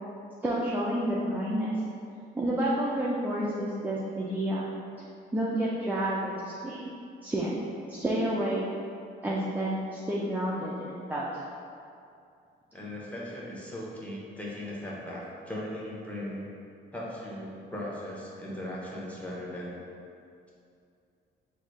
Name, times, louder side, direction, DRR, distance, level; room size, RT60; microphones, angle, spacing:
voice 1, 0.4-1.7 2.3-4.7 5.3-6.9 7.2-7.6 7.9-8.7 9.2-11.3, right 1 dB, 10° right, -5 dB, 0.3 m, -29 dB
voice 2, 12.7-16.5 16.9-19.8, left 1 dB, 5° left, -6 dB, 0.7 m, -38 dB
3.8 x 2.0 x 3.1 m, 2.4 s
cardioid pair, 90°, 20 cm